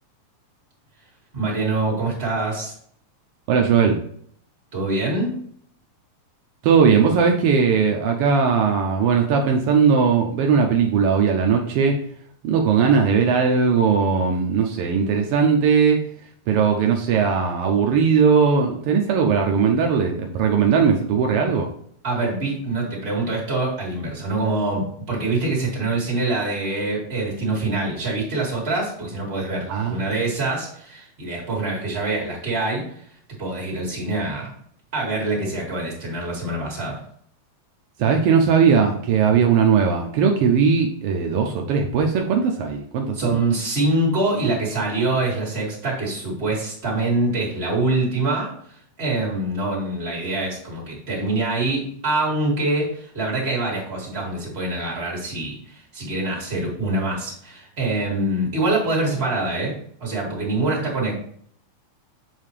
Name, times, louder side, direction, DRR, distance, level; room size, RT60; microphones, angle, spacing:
voice 1, 1.3-2.7 4.7-5.3 22.0-33.0 33.4-34.5 34.9-37.0 43.2-48.5 49.0-61.1, right 2 dB, 20° right, -4 dB, 2.2 m, -25 dB
voice 2, 3.5-4.0 6.6-12.0 12.4-16.0 16.5-21.7 29.7-30.1 38.0-43.4, right 6 dB, 85° right, 2 dB, 1.3 m, -19 dB
7.5 x 4.9 x 3.3 m, 0.63 s
omnidirectional pair, 3.4 m